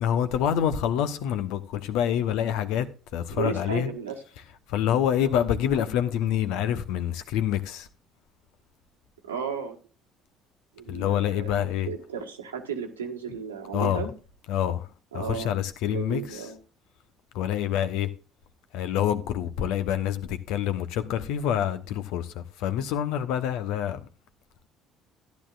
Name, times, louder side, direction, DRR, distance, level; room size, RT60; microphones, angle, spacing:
voice 1, 0.0-2.9 3.1-3.9 4.7-7.9 10.9-11.9 13.7-14.1 14.5-14.9 15.1-16.4 17.3-18.1 18.7-24.0, left 10 dB, 65° left, 1.0 m, -26 dB
voice 2, 3.3-4.2 5.2-5.3 9.2-9.8 10.8-14.1 15.1-15.5 15.9-16.6, right 7 dB, 85° right, 1.6 m, -34 dB
14.0 x 10.5 x 2.5 m
figure-of-eight pair, 55°, 0 cm